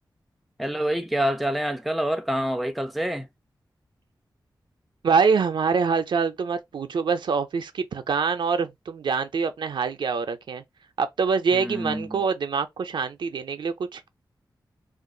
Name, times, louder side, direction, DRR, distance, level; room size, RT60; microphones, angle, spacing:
voice 1, 0.6-3.3 11.5-12.2, equal, ahead, 0.4 m, -27 dB
voice 2, 5.0-10.6 11.0-14.1, right 5 dB, 80° right, 0.5 m, -25 dB
2.4 x 2.3 x 3.7 m
wide cardioid pair, 130°, 8 cm